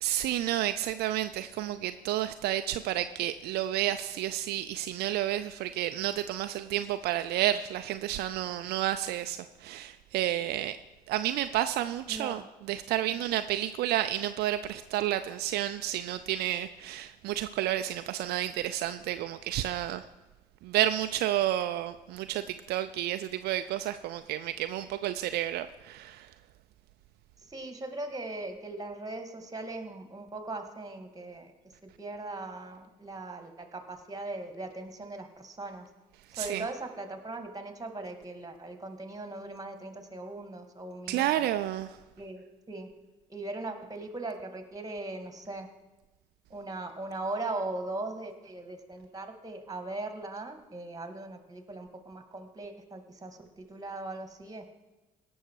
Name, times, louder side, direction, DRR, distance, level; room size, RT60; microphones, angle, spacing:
voice 1, 0.0-10.8 11.1-12.4 12.7-20.0 20.6-26.3 36.3-36.7 41.1-42.0, right 13 dB, 70° right, 10 dB, 0.4 m, -30 dB
voice 2, 12.1-12.4 13.1-13.2 27.5-31.5 32.0-35.9 36.4-41.5 42.2-42.9 43.3-45.7 46.5-54.7, right 2 dB, 20° right, 7 dB, 2.1 m, -39 dB
17.5 x 6.3 x 4.7 m, 1.1 s
hypercardioid pair, 55°, 18 cm